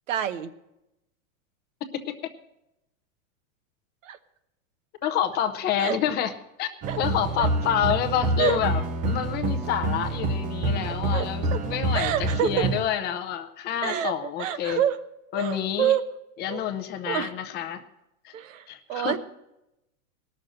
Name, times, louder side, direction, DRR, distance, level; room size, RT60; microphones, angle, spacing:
voice 1, 0.1-0.5 4.0-4.2 5.8-6.0 6.9-7.0 7.4-7.5 8.4-8.6 11.1-11.2 11.5-11.6 11.9-12.5 13.8-14.1 14.4-15.0 15.3-16.0 16.5-16.6 17.1-17.3 18.3-18.6 18.9-19.2, right 10 dB, 70° right, 11 dB, 1.1 m, -27 dB
voice 2, 5.0-6.3 6.6-6.7 7.0-14.8 15.3-16.0 16.4-17.8 18.2-18.3 18.7-19.2, left 10 dB, 25° left, 7 dB, 0.7 m, -28 dB
sound 1, 6.8-12.8, right 2 dB, 20° right, 0.5 m, -27 dB
17.5 x 6.6 x 7.7 m, 0.89 s
supercardioid pair, 150°, 40 cm